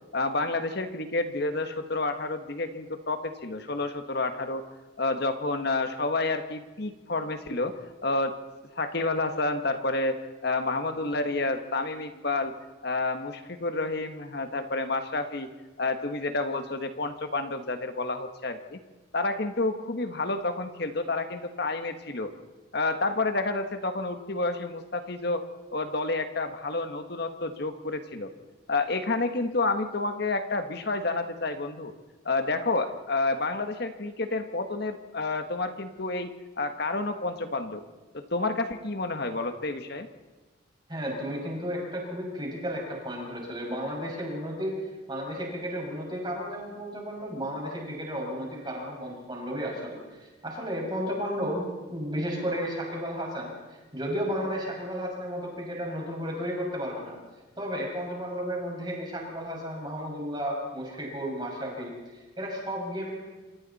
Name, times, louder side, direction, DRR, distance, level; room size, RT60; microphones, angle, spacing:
voice 1, 0.1-4.6 5.0-8.4 8.7-12.5 12.8-15.5 15.8-18.8 19.1-22.3 22.7-25.5 25.7-28.3 28.7-31.9 32.2-37.8 38.1-40.1, left 2 dB, 50° left, 8 dB, 1.4 m, -29 dB
voice 2, 40.9-44.7 45.1-57.2 57.6-63.1, equal, 20° right, -2 dB, 5.9 m, -33 dB
27.5 x 25.5 x 4.2 m, 1.2 s
head